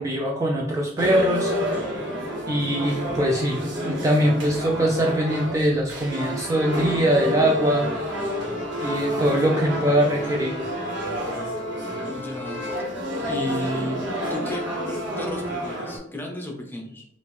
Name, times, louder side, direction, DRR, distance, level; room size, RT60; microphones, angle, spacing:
voice 1, 0.0-1.5 2.5-7.9 8.8-10.6, right 1 dB, 15° right, 0 dB, 0.4 m, -22 dB
sound 1, 1.0-16.0, equal, 80° right, 1.4 m, -29 dB
voice 2, 12.1-12.7 13.2-14.0 14.3-17.1, left 1 dB, 10° left, 1 dB, 0.7 m, -33 dB
5.0 x 2.6 x 3.2 m, 0.71 s
head